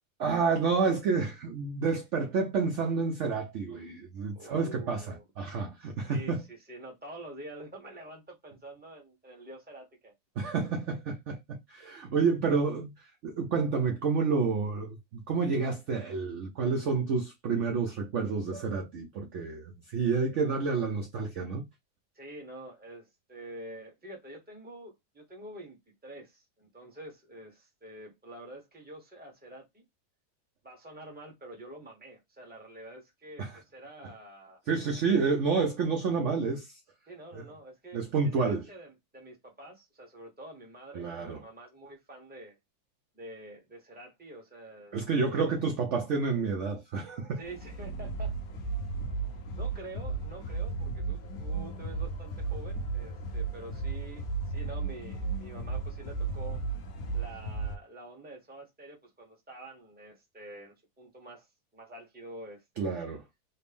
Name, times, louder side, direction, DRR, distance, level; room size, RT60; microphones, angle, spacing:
voice 1, 0.2-6.4 10.4-21.6 33.4-33.6 34.7-36.8 37.3-37.4 37.9-38.6 40.9-41.4 44.9-47.4 62.8-63.2, right 5 dB, 75° right, 0.6 m, -29 dB
voice 2, 4.3-5.2 5.8-10.1 22.1-25.8 26.0-29.8 30.6-34.6 35.0-35.3 37.1-42.6 43.1-45.5 47.4-48.3 49.6-56.6 57.1-61.5 61.7-63.2, right 1 dB, 10° right, 0.7 m, -47 dB
sound 1, 47.4-57.8, right 4 dB, 60° left, 1.0 m, -35 dB
4.2 x 2.0 x 3.4 m
omnidirectional pair, 2.0 m